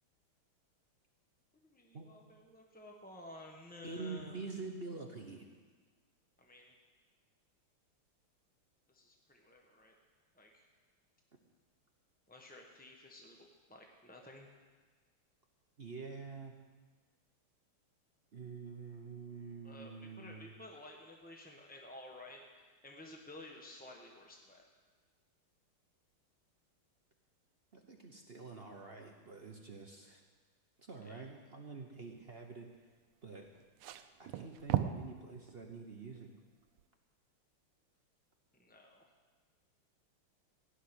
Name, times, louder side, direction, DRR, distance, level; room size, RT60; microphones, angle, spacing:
voice 1, 1.7-4.4 6.4-6.7 8.9-9.9 10.3-10.6 12.3-14.5 19.6-24.6 31.0-31.2 38.6-39.1, left 1 dB, 10° left, 1 dB, 0.5 m, -53 dB
voice 2, 3.8-5.5 15.8-16.6 18.3-20.5 27.7-30.2 30.8-32.7 33.2-33.5 34.2-36.3, right 4 dB, 45° right, 2 dB, 0.8 m, -47 dB
sound 1, 33.4-35.1 35.5-35.7 36.8-36.9, right 11 dB, 85° right, 1.6 m, -36 dB
16.0 x 6.7 x 9.9 m, 1.4 s
omnidirectional pair, 2.4 m